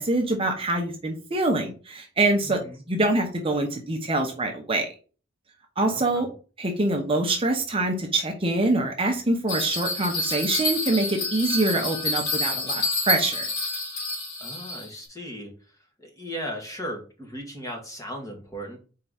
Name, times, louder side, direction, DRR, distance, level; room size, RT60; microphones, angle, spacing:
voice 1, 0.0-2.6 2.9-4.9 5.8-6.3 6.6-13.5, right 2 dB, 30° right, 3 dB, 0.9 m, -25 dB
voice 2, 2.4-2.8 5.9-6.3 14.4-15.5 16.0-18.8, equal, 15° left, 1 dB, 1.7 m, -37 dB
Bell, 9.5-15.0, left 2 dB, 50° left, 3.1 m, -28 dB
4.5 x 3.8 x 5.6 m, 0.37 s
head